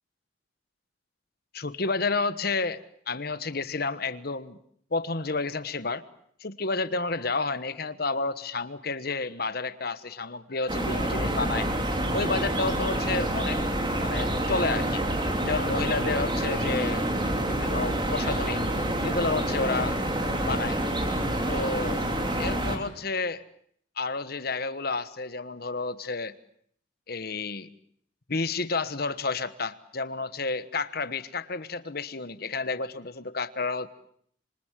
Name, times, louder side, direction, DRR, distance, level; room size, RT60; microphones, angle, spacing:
voice 1, 1.5-4.6 4.9-6.0 6.4-11.7 12.1-13.6 14.0-15.0 15.4-17.1 17.5-18.6 19.0-20.0 20.4-20.8 21.5-22.0 22.4-23.4 24.0-26.4 27.1-27.7 28.3-33.9, left 3 dB, 50° left, 13 dB, 1.2 m, -30 dB
sound 1, 10.7-22.8, right 1 dB, 25° right, 3.3 m, -27 dB
26.5 x 25.0 x 7.5 m, 0.65 s
head